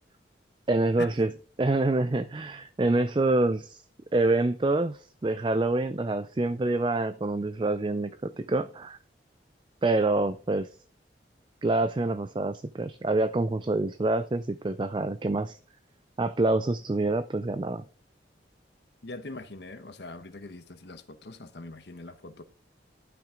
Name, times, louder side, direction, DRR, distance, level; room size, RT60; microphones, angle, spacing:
voice 1, 0.7-1.3 1.6-3.8 4.1-9.0 9.8-10.7 11.6-15.6 16.2-17.8, right 2 dB, 25° right, 0.4 m, -26 dB
voice 2, 19.0-22.4, left 2 dB, 65° left, 1.0 m, -42 dB
12.0 x 6.0 x 3.8 m
head